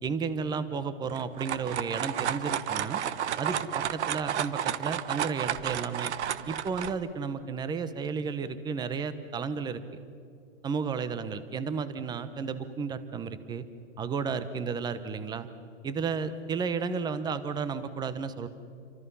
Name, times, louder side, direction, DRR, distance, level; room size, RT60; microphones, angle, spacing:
voice 1, 0.0-3.0 3.4-6.1 6.5-9.8 10.6-13.6 14.0-15.5 15.8-18.5, right 5 dB, 10° right, 13 dB, 1.0 m, -33 dB
sound 1, 1.1-6.9, right 9 dB, 60° right, 1.3 m, -32 dB
30.0 x 25.0 x 5.6 m, 2.3 s
hypercardioid pair, 140°, 38 cm